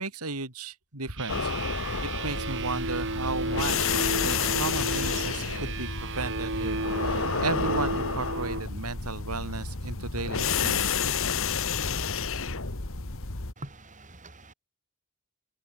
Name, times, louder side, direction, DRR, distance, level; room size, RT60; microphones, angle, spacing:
voice 1, 0.0-1.5 2.2-11.0, right 3 dB, 80° right, 5.4 m, -35 dB
sound 1, 1.2-8.6, right 2 dB, 60° right, 5.9 m, -33 dB
sound 2, 1.3-13.5, left 5 dB, 65° left, 2.2 m, -30 dB
voice 2, 13.6-14.5, right 1 dB, 35° right, 7.9 m, -44 dB
head